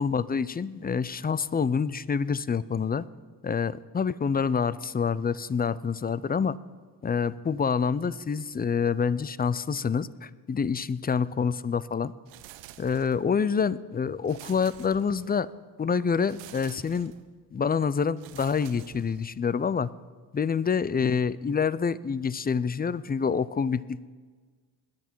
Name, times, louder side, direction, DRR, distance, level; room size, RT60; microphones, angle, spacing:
voice 1, 0.0-3.0 3.4-6.6 7.0-12.1 12.8-15.5 15.8-17.1 17.5-19.9 20.3-24.1, left 6 dB, 20° left, 19 dB, 0.4 m, -27 dB
sound 1, 12.3-13.4 14.3-15.5 16.3-17.3 18.2-19.5, right 13 dB, 80° right, 0.7 m, -49 dB
20.5 x 10.5 x 4.6 m, 1.5 s
supercardioid pair, 60°, 44 cm